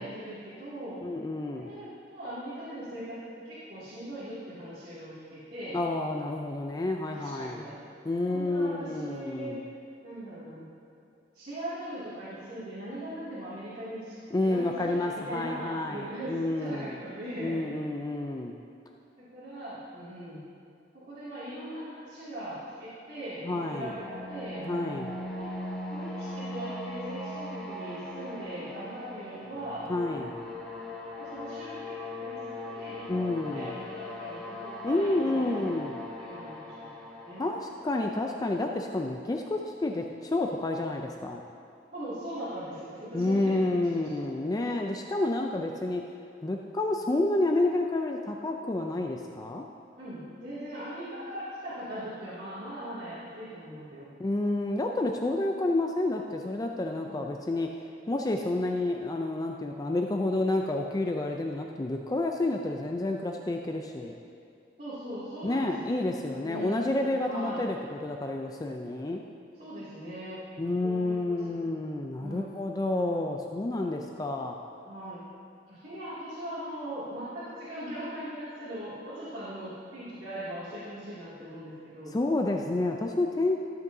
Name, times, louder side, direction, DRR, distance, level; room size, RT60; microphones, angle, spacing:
voice 1, 0.0-1.0 1.5-3.2 3.4-5.8 7.1-7.8 8.3-9.6 10.0-10.7 11.3-14.2 14.4-17.7 19.2-20.4 20.9-24.6 25.4-25.5 25.9-29.9 31.2-35.8 36.2-36.9 37.2-37.5 41.9-44.1 50.0-54.1 57.0-57.3 64.8-65.9 66.4-67.0 67.3-67.7 69.6-70.4 70.8-71.4 72.2-72.5 74.9-75.2 75.7-82.2, right 1 dB, 50° right, -14 dB, 2.3 m, -40 dB
voice 2, 1.0-1.7 5.7-7.6 8.0-9.6 14.3-17.0 17.4-18.5 23.4-23.9 24.6-25.1 29.9-30.3 33.1-33.7 34.8-36.0 37.4-41.4 43.1-46.0 46.4-49.7 54.2-57.7 58.1-64.1 65.4-69.2 70.6-74.5 82.1-83.6, left 2 dB, 20° left, 2 dB, 0.4 m, -29 dB
sound 1, 23.5-39.3, left 1 dB, 5° left, 1.0 m, -40 dB
13.5 x 7.8 x 2.7 m, 2.5 s
head